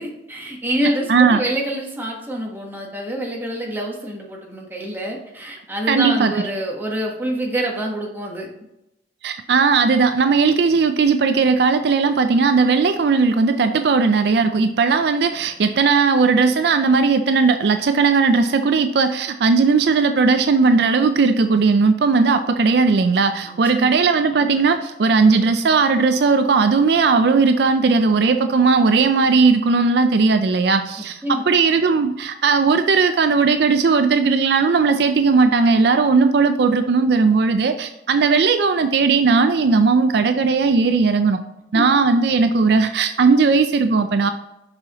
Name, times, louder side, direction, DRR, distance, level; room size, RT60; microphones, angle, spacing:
voice 1, 0.0-8.5 23.4-23.9 31.0-31.5 41.7-41.8, right 1 dB, 10° right, -1 dB, 1.2 m, -26 dB
voice 2, 1.1-1.4 5.9-6.3 9.2-41.4 41.7-44.3, right 4 dB, 60° right, 8 dB, 0.4 m, -17 dB
6.9 x 5.5 x 2.9 m, 0.89 s
head